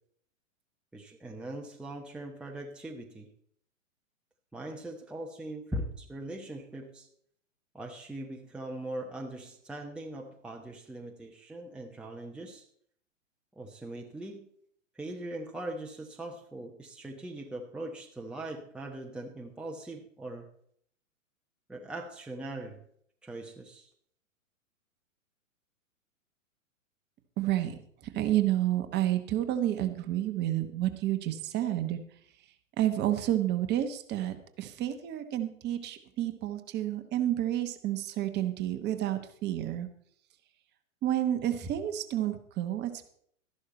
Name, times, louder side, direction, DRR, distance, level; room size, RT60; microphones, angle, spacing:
voice 1, 0.9-3.3 4.5-7.1 7.7-12.7 13.6-14.5 14.9-20.5 21.7-22.8 23.2-23.9 36.2-36.3, right 1 dB, ahead, 1 dB, 1.0 m, -41 dB
voice 2, 27.4-27.8 28.1-32.0 32.8-39.9 41.0-43.1, right 12 dB, 25° right, 7 dB, 1.2 m, -30 dB
13.0 x 11.5 x 4.3 m, 0.64 s
hypercardioid pair, 115°, 40 cm